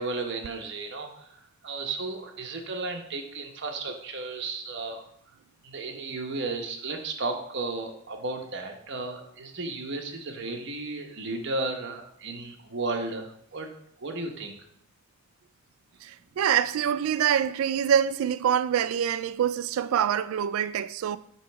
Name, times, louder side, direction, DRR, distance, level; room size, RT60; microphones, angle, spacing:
voice 1, 0.0-5.0 5.6-13.7 14.0-14.6, right 3 dB, 60° right, 1.0 m, -34 dB
voice 2, 16.0-21.2, right 9 dB, 85° right, 0.3 m, -25 dB
7.9 x 3.1 x 4.6 m
head